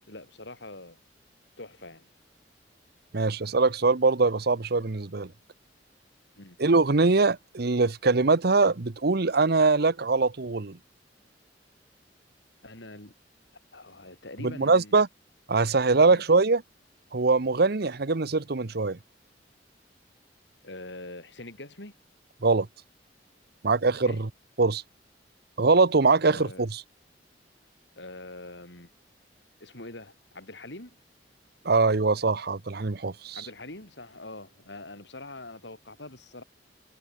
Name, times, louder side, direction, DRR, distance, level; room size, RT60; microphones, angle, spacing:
voice 1, 0.0-1.0 1.6-2.1 6.4-6.6 12.6-13.1 13.7-15.0 16.1-16.2 20.6-21.9 24.0-24.2 26.3-26.7 28.0-28.9 29.6-31.0 33.3-36.4, left 2 dB, 70° left, 5.8 m, -43 dB
voice 2, 3.1-5.3 6.6-10.8 14.4-15.1 15.5-16.6 17.1-19.0 22.4-22.7 23.6-24.3 24.6-24.8 25.6-26.8 31.6-33.4, right 3 dB, 60° right, 0.9 m, -23 dB
head